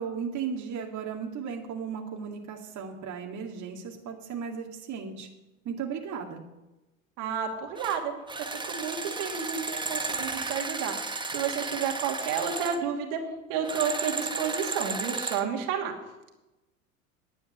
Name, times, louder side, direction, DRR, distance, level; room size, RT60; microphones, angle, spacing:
voice 1, 0.0-5.3 5.6-6.4, right 6 dB, 45° right, 0 dB, 2.2 m, -35 dB
voice 2, 7.2-8.1 8.5-11.0 11.3-13.2 13.5-15.9, right 7 dB, 65° right, 2 dB, 2.7 m, -31 dB
sound 1, 7.8-8.0 8.3-12.8 13.6-15.5, right 3 dB, 10° right, 1.3 m, -33 dB
11.0 x 8.6 x 9.7 m, 1.0 s
hypercardioid pair, 80°, 41 cm